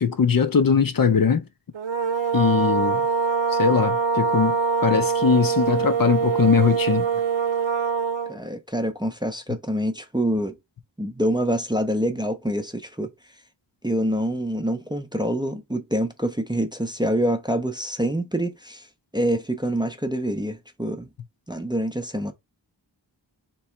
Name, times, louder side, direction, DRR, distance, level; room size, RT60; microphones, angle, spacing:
voice 1, 0.0-1.4 2.3-3.1 3.5-7.1, left 6 dB, 50° left, 0.6 m, -21 dB
sound 1, 1.7-8.4, right 6 dB, 85° right, 0.8 m, -23 dB
voice 2, 8.3-10.6 11.0-13.1 13.8-18.9 19.1-21.1 21.5-22.3, equal, 10° right, 0.5 m, -26 dB
3.3 x 3.0 x 4.4 m
wide cardioid pair, 90°, 45 cm